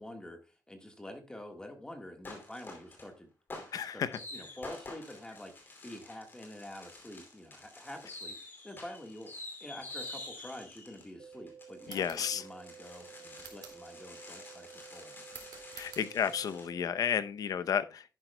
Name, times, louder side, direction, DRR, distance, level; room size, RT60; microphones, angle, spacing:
voice 1, 0.0-15.4, left 1 dB, 10° left, 1.5 m, -48 dB
sound 1, 2.2-3.1 3.5-16.7, left 2 dB, 30° left, 2.6 m, -48 dB
voice 2, 3.7-4.1 11.9-12.4 15.8-18.0, left 8 dB, 60° left, 0.6 m, -32 dB
sound 2, 11.2-17.2, right 7 dB, 45° right, 1.3 m, -52 dB
sound 3, 11.8-12.3 13.4-13.9 15.3-16.1, right 7 dB, 75° right, 2.3 m, -50 dB
11.0 x 10.0 x 2.2 m
wide cardioid pair, 145°, 7 cm